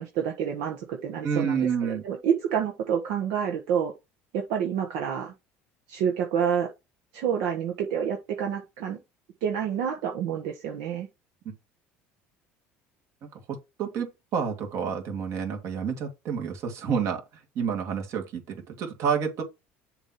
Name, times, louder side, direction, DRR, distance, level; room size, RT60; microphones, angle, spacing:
voice 1, 0.0-3.9 4.3-5.3 5.9-6.7 7.1-9.0 9.4-11.1, right 8 dB, 80° right, 1.2 m, -28 dB
voice 2, 1.2-2.0 13.2-17.2 17.6-19.4, right 6 dB, 60° right, 2.1 m, -29 dB
7.1 x 3.0 x 5.6 m
supercardioid pair, 110°, 6 cm